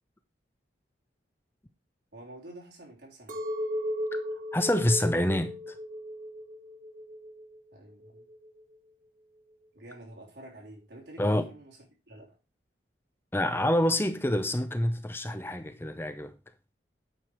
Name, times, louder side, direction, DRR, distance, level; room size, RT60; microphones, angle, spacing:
voice 1, 2.1-3.4 7.7-8.2 9.7-12.4, right 1 dB, 75° right, 3.6 m, -49 dB
Chink clink, 3.3-7.6 8.0-8.6, equal, 50° right, 1.3 m, -36 dB
voice 2, 4.5-5.8 11.2-11.5 13.3-16.3, left 1 dB, 15° left, 0.5 m, -27 dB
9.0 x 4.7 x 4.9 m
head